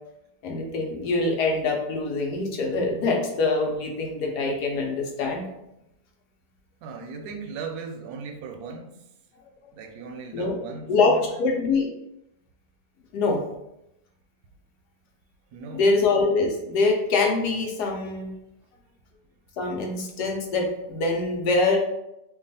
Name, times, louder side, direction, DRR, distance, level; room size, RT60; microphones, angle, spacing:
voice 1, 0.4-5.4 10.3-10.6 10.9-11.1 11.4-11.9 13.1-13.4 15.7-18.3 19.6-21.8, left 3 dB, 80° left, 1 dB, 1.3 m, -24 dB
voice 2, 6.8-9.0 9.7-11.4 15.5-15.9, right 4 dB, 80° right, 5 dB, 1.1 m, -37 dB
3.0 x 2.3 x 4.0 m, 0.86 s
omnidirectional pair, 1.7 m